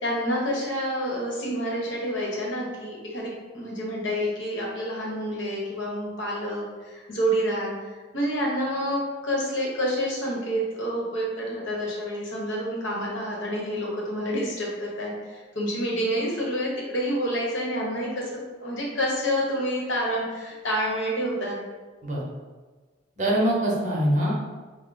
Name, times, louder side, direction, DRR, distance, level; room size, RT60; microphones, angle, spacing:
voice 1, 0.0-7.9 8.1-21.6, equal, 65° left, -3 dB, 0.9 m, -28 dB
voice 2, 23.2-24.3, right 1 dB, 40° right, -4 dB, 0.7 m, -23 dB
3.5 x 2.0 x 3.9 m, 1.3 s
head